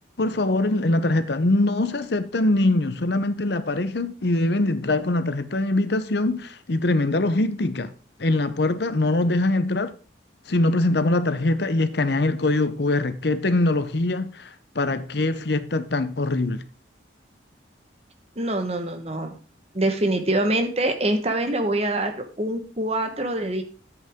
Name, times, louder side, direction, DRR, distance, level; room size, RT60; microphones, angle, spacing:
voice 1, 0.2-7.9 8.2-9.9 10.5-16.6, left 2 dB, 60° left, 0.8 m, -23 dB
voice 2, 18.3-19.4 19.7-23.6, right 1 dB, 35° right, 1.3 m, -25 dB
10.5 x 8.2 x 3.7 m
head